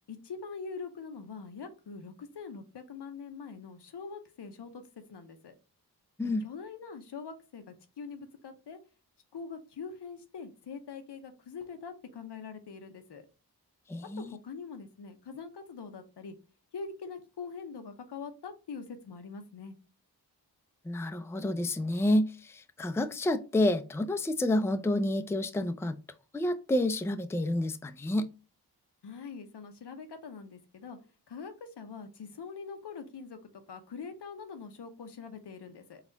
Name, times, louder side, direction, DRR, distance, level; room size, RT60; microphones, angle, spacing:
voice 1, 0.1-4.8 5.1-5.5 6.4-8.8 9.3-13.2 14.2-16.3 16.7-19.8 29.0-31.0 31.3-33.4 33.7-36.0, left 5 dB, 85° left, 0.8 m, -43 dB
voice 2, 13.9-14.4 20.8-26.0 26.3-28.3, left 1 dB, 5° left, 0.4 m, -29 dB
4.1 x 2.4 x 3.9 m
wide cardioid pair, 65°, 40 cm